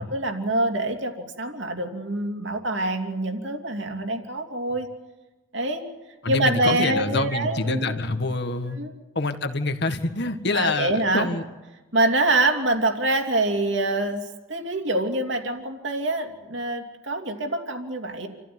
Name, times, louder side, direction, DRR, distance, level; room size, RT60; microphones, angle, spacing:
voice 1, 0.0-4.9 5.5-5.8 6.3-8.0 8.7-8.9 10.5-11.3 11.9-14.2 14.5-18.3, right 2 dB, 60° right, 4 dB, 2.9 m, -25 dB
voice 2, 6.2-8.8 9.2-11.4, left 3 dB, 55° left, 7 dB, 1.8 m, -26 dB
28.5 x 15.0 x 9.5 m, 1.1 s
head